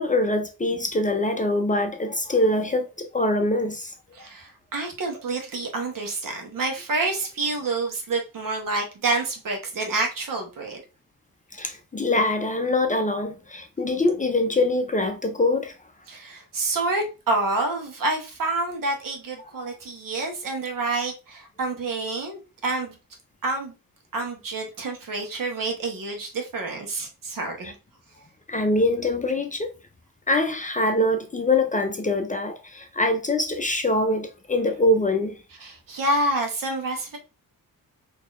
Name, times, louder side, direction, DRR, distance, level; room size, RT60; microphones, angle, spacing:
voice 1, 0.0-3.9 11.5-15.7 28.5-29.7 30.3-35.3, left 2 dB, 20° left, 0.5 m, -24 dB
voice 2, 4.1-10.8 16.1-23.0 23.4-23.7 24.1-27.7 35.6-37.2, right 2 dB, 65° right, 1.2 m, -28 dB
3.8 x 2.9 x 2.5 m
cardioid pair, 100°, 36 cm